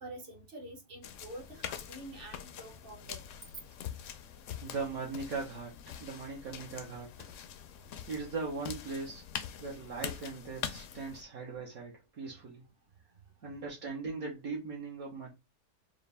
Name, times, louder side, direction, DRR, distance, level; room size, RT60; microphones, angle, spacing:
voice 1, 0.0-3.2, right 1 dB, 40° right, 1.0 m, -47 dB
sound 1, 1.0-11.2, left 9 dB, 70° left, 0.8 m, -44 dB
voice 2, 4.6-7.3 8.1-9.2 9.6-12.6 13.4-15.3, right 4 dB, 65° right, 1.5 m, -39 dB
4.7 x 2.6 x 3.4 m
omnidirectional pair, 1.7 m